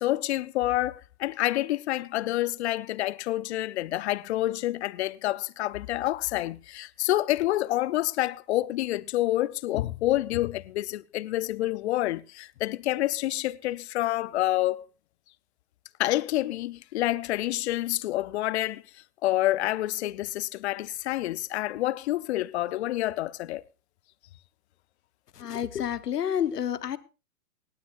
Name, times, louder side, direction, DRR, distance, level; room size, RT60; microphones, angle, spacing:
voice 1, 0.0-14.9 16.0-18.8 19.2-23.6, left 15 dB, 45° left, 0.6 m, -28 dB
voice 2, 25.3-27.0, left 9 dB, 85° left, 1.2 m, -29 dB
17.5 x 17.5 x 2.6 m
hypercardioid pair, 130°, 46 cm